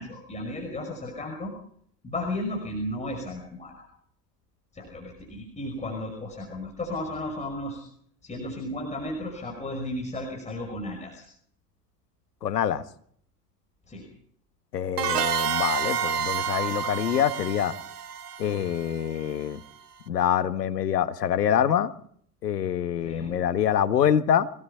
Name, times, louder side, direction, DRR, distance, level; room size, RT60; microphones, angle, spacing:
voice 1, 0.0-1.5 2.0-3.9 4.7-7.9 8.2-11.3 13.9-14.1 23.0-23.3, left 1 dB, 15° left, 5.6 m, -34 dB
voice 2, 12.4-12.8 14.7-17.7 18.4-19.6 20.1-21.9 22.4-24.5, left 9 dB, 70° left, 1.7 m, -25 dB
sound 1, 15.0-19.5, right 7 dB, 70° right, 1.9 m, -29 dB
25.0 x 19.0 x 5.8 m
figure-of-eight pair, 95°, 49 cm